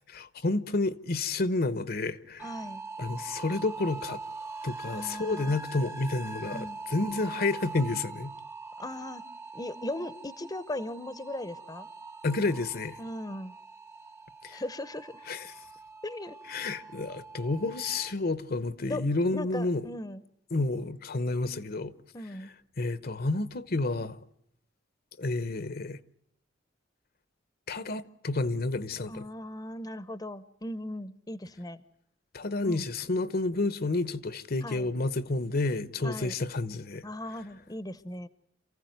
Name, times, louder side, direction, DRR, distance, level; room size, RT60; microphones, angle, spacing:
voice 1, 0.1-2.5 3.0-4.2 4.6-8.3 12.2-13.0 14.4-14.6 15.3-15.5 16.5-19.8 20.5-21.9 22.8-24.2 25.2-26.0 27.7-29.2 32.3-37.0, left 2 dB, 55° left, 1.0 m, -30 dB
voice 2, 2.4-2.8 4.9-5.6 6.5-7.2 8.8-9.2 9.5-11.9 13.0-13.5 14.5-15.2 16.0-16.4 18.9-19.0 19.3-20.2 22.1-22.5 29.1-31.8 32.6-32.9 34.6-34.9 36.0-36.3 37.0-38.3, left 1 dB, 20° left, 0.8 m, -38 dB
sound 1, 2.4-18.1, right 3 dB, 15° right, 0.9 m, -43 dB
28.0 x 15.5 x 9.2 m
head